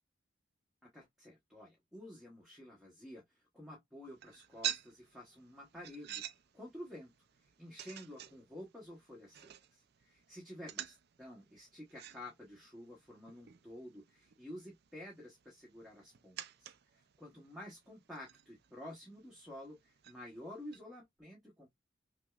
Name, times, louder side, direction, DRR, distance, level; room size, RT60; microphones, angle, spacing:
voice 1, 0.8-6.2 6.5-7.1 7.4-21.7, left 1 dB, ahead, 1.0 m, -51 dB
sound 1, 4.0-20.8, right 11 dB, 55° right, 0.4 m, -49 dB
6.0 x 2.1 x 2.3 m
head